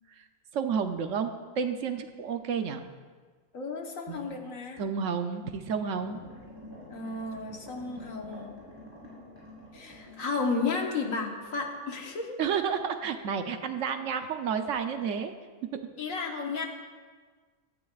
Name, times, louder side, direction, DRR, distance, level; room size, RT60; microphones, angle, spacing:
voice 1, 0.5-2.8 4.1-4.4 4.8-6.2 12.4-15.4, right 6 dB, 65° right, 7 dB, 1.0 m, -31 dB
voice 2, 3.5-4.8 6.9-8.6 9.7-12.4 16.0-16.7, left 4 dB, 70° left, 2 dB, 1.6 m, -33 dB
sound 1, 5.9-12.3 12.6-12.7, left 1 dB, 15° right, 4.1 m, -48 dB
16.0 x 13.0 x 2.4 m, 1.5 s
omnidirectional pair, 1.4 m